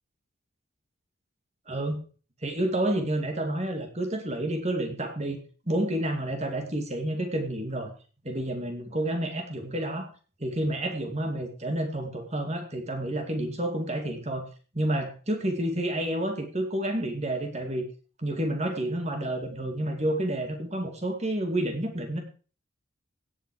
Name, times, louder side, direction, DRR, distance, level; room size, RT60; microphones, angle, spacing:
voice 1, 1.7-2.0 2.4-5.4 5.7-7.9 8.2-10.1 10.4-14.5 14.7-17.8 18.2-22.2, right 1 dB, 30° right, 4 dB, 2.3 m, -29 dB
16.5 x 7.5 x 4.8 m, 0.38 s
head